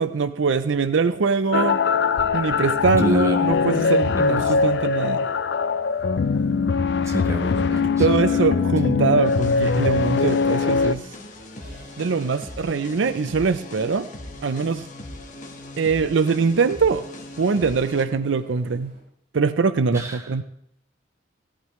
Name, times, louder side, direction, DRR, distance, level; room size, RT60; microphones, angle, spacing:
voice 1, 0.0-1.8 2.3-5.3 8.0-11.1 12.0-14.1 14.4-14.8 15.8-17.1 17.4-18.9 19.3-20.4, right 5 dB, 70° right, 12 dB, 0.5 m, -22 dB
sound 1, 1.4-19.0, right 2 dB, 40° right, 5.8 m, -52 dB
sound 2, 1.5-11.0, left 5 dB, 60° left, 0.4 m, -21 dB
voice 2, 3.0-3.5 4.1-4.5 7.0-8.6 19.9-20.3, equal, 15° right, 3 dB, 1.0 m, -30 dB
sound 3, 9.2-18.0, left 2 dB, 40° left, 1.2 m, -40 dB
16.0 x 11.5 x 3.1 m, 0.73 s
head